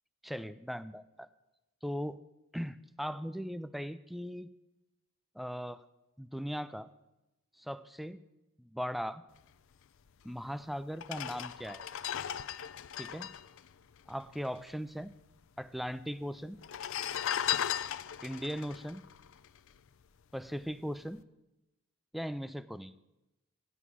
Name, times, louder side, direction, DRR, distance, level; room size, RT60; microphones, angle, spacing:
voice 1, 0.2-1.3 1.8-2.2 2.5-4.5 5.4-5.8 6.2-6.9 7.6-8.2 8.6-9.2 10.2-11.8 13.0-13.3 14.1-15.1 15.6-16.6 18.2-19.0 20.3-21.2 22.1-22.9, equal, ahead, 14 dB, 0.3 m, -39 dB
sound 1, 10.3-10.4 10.9-14.6 14.9-15.0 15.2-15.9 16.5-20.0 20.5-20.7, left 10 dB, 60° left, 0.4 m, -37 dB
11.0 x 6.1 x 8.4 m, 0.95 s
head